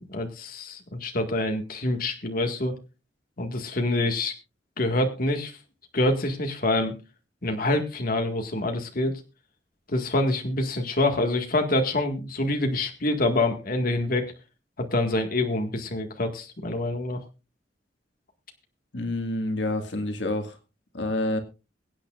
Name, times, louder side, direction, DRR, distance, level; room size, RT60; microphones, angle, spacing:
voice 1, 0.1-2.7 3.4-4.3 4.8-5.6 5.9-7.0 7.4-9.2 9.9-14.3 14.8-17.2, left 2 dB, 55° left, 4 dB, 1.9 m, -26 dB
voice 2, 18.9-20.6 20.9-21.4, left 1 dB, 80° left, 6 dB, 1.9 m, -28 dB
23.0 x 8.9 x 2.5 m, 0.29 s
head